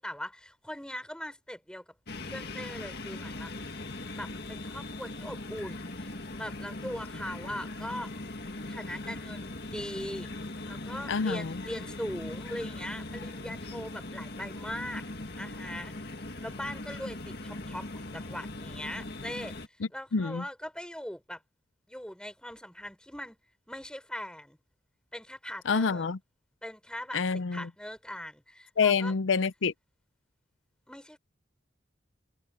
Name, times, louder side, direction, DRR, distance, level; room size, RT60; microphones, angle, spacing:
voice 1, 0.0-1.8 2.3-3.5 4.1-8.1 8.7-10.3 10.6-15.0 15.3-19.5 19.9-21.4 21.9-23.4 23.7-24.6 25.1-26.1 26.6-29.1 30.9-31.2, equal, 5° left, 4.7 m, -40 dB
sound 1, 2.1-19.7, left 2 dB, 60° left, 2.0 m, -40 dB
voice 2, 11.1-11.5 20.1-20.4 25.7-26.2 27.1-27.7 28.8-29.7, left 5 dB, 90° left, 0.6 m, -27 dB
head